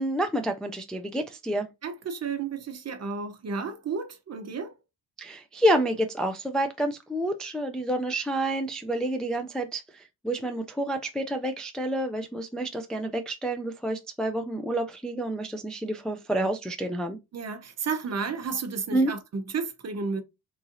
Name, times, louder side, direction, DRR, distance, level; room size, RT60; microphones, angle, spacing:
voice 1, 0.0-1.7 5.2-17.2 18.9-19.1, right 1 dB, ahead, 0.3 m, -29 dB
voice 2, 1.8-4.8 17.3-20.2, right 5 dB, 40° right, 0.8 m, -32 dB
3.6 x 3.1 x 2.6 m
cardioid pair, 135°, 38 cm